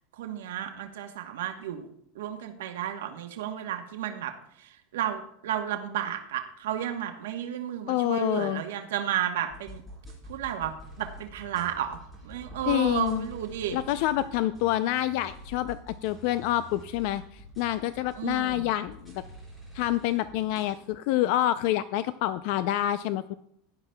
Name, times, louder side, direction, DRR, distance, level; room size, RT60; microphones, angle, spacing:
voice 1, 0.2-1.9 2.1-4.3 4.6-9.8 10.3-12.0 12.2-13.8 18.2-18.7, right 10 dB, 90° right, 5 dB, 1.0 m, -32 dB
voice 2, 7.9-8.6 12.7-13.3 13.7-19.2 19.7-23.3, left 14 dB, 55° left, 14 dB, 0.3 m, -27 dB
sound 1, 9.5-20.8, right 1 dB, 10° left, 3.8 m, -47 dB
16.5 x 11.0 x 2.2 m, 0.74 s
supercardioid pair, 160°, 0 cm